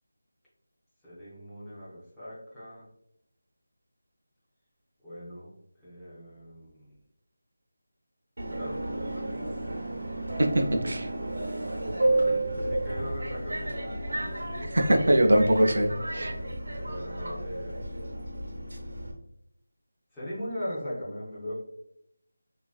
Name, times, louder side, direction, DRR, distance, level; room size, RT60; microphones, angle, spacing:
voice 1, 1.0-2.9 5.0-5.5 5.8-6.9 8.5-9.7 12.0-15.1 16.8-17.8 20.1-21.6, equal, 5° left, -14 dB, 0.5 m, -40 dB
Subway metro underground, 8.4-19.1, right 2 dB, 80° right, 0.8 m, -32 dB
voice 2, 10.4-11.1 14.7-16.3, right 1 dB, 50° right, 3 dB, 0.4 m, -22 dB
3.0 x 2.4 x 2.3 m, 0.78 s
figure-of-eight pair, 180°, 0 cm